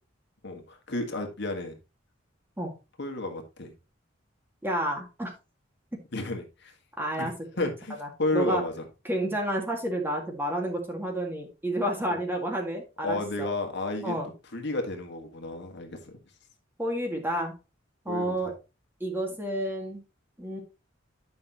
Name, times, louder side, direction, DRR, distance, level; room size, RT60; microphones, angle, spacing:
voice 1, 0.4-1.7 3.0-3.7 6.1-6.7 7.2-8.7 12.1-12.2 13.0-14.1 14.5-16.1 18.1-18.4, left 2 dB, 60° left, 4 dB, 1.8 m, -32 dB
voice 2, 4.6-5.3 5.9-6.0 7.0-7.3 7.6-7.7 8.0-8.6 9.1-13.5 14.0-14.3 16.8-17.5 18.1-18.5 19.0-20.0 20.4-20.6, right 1 dB, 10° right, 2 dB, 1.9 m, -30 dB
10.5 x 5.8 x 3.0 m, 0.28 s
head